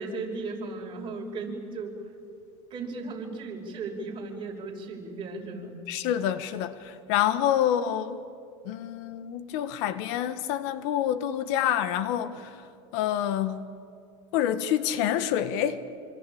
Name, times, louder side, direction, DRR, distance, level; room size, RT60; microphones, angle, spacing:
voice 1, 0.0-2.0 2.7-5.7, right 3 dB, 30° right, 5.4 m, -36 dB
voice 2, 5.9-8.2 8.6-12.6 12.9-13.7 14.3-15.8, left 10 dB, 70° left, 1.5 m, -27 dB
26.0 x 25.5 x 8.6 m
supercardioid pair, 130°, 15 cm